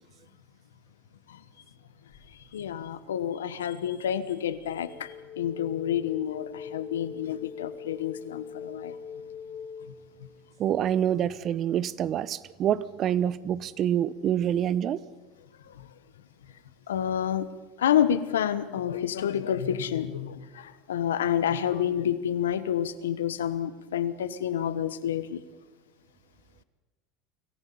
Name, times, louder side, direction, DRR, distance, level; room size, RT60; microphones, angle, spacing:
sound 1, 2.1-2.9 4.5-12.2, left 6 dB, 45° left, 3.2 m, -43 dB
voice 1, 2.5-9.0 16.9-17.4 17.8-25.4, left 9 dB, 90° left, 14 dB, 1.1 m, -29 dB
voice 2, 10.6-15.0, right 10 dB, 45° right, 19 dB, 0.8 m, -26 dB
25.5 x 15.0 x 7.0 m, 1.2 s
hypercardioid pair, 90°, 0 cm